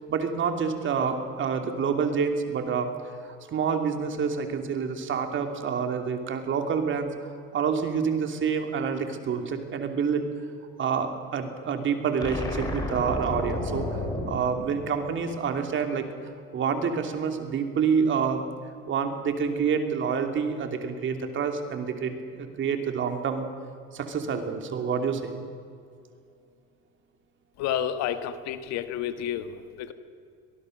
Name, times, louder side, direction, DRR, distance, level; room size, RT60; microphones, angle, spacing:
voice 1, 0.1-2.9 3.2-10.2 10.8-13.9 14.3-18.4 18.9-23.5 23.9-25.4, right 6 dB, 40° right, 5 dB, 3.0 m, -28 dB
sound 1, 12.2-15.5, left 1 dB, 15° left, 4.7 m, -32 dB
voice 2, 27.6-29.5 29.8-29.9, left 10 dB, 65° left, 10 dB, 1.6 m, -30 dB
24.0 x 19.0 x 6.6 m, 2.4 s
supercardioid pair, 110°, 30 cm